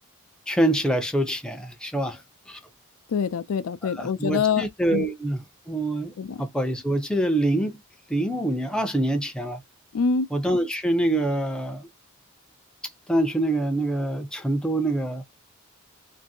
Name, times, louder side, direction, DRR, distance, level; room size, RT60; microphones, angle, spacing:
voice 1, 0.5-2.2 2.5-2.6 3.8-7.8 8.1-9.6 10.3-11.9 13.1-15.2, right 1 dB, 5° left, 0.5 m, -25 dB
voice 2, 3.1-4.6 4.9-5.0 6.2-6.4 9.9-10.3, left 6 dB, 85° left, 0.4 m, -25 dB
2.6 x 2.6 x 2.7 m
head